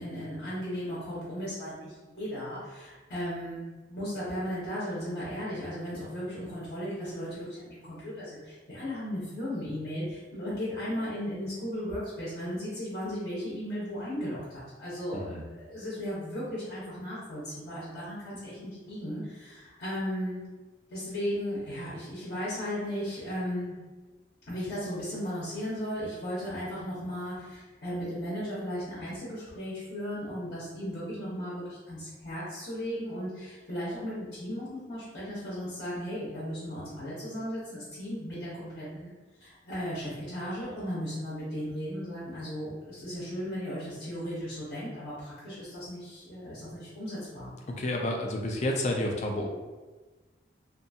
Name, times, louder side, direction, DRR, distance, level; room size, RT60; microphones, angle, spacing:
voice 1, 0.0-3.6 3.9-20.4 20.9-23.7 24.4-39.1 39.4-47.5, equal, 60° left, -9 dB, 0.8 m, -36 dB
voice 2, 15.1-15.4 47.8-49.5, left 1 dB, 40° left, 1 dB, 0.4 m, -30 dB
2.6 x 2.3 x 2.6 m, 1.2 s
head